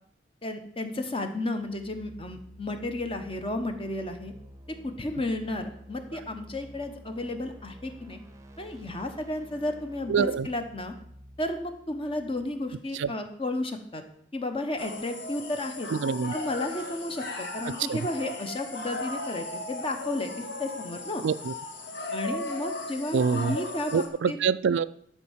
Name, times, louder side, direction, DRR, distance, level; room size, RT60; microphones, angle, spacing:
voice 1, 0.4-4.3 4.7-8.2 8.6-10.9 11.4-14.0 14.3-15.9 16.3-21.2 22.1-24.4, left 1 dB, 30° left, 6 dB, 1.1 m, -33 dB
sound 1, 1.5-13.3, equal, 15° right, 0.8 m, -50 dB
voice 2, 10.1-10.5 12.9-13.1 15.9-16.3 17.9-18.0 21.2-21.5 23.1-23.6 23.9-24.9, right 6 dB, 70° right, 15 dB, 0.4 m, -25 dB
sound 2, 14.8-24.1, left 2 dB, 60° left, 1.7 m, -37 dB
12.0 x 4.3 x 7.3 m, 0.68 s
head